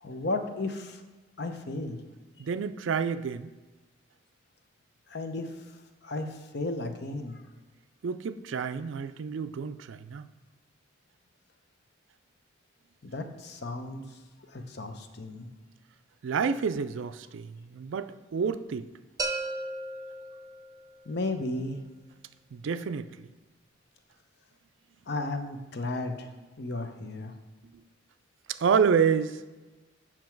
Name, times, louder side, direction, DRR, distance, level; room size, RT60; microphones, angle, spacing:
voice 1, 0.0-1.0 1.4-2.0 5.1-5.5 6.0-7.4 13.0-14.0 14.5-15.5 21.1-21.8 25.1-26.3 26.6-27.3, left 2 dB, 55° left, 7 dB, 0.7 m, -34 dB
voice 2, 2.4-3.5 8.0-10.3 16.2-18.9 22.5-23.3 28.5-29.4, right 6 dB, 70° right, 12 dB, 0.4 m, -29 dB
sound 1, 19.2-21.0, right 2 dB, 20° right, 0.6 m, -35 dB
7.6 x 6.0 x 4.5 m, 1.2 s
head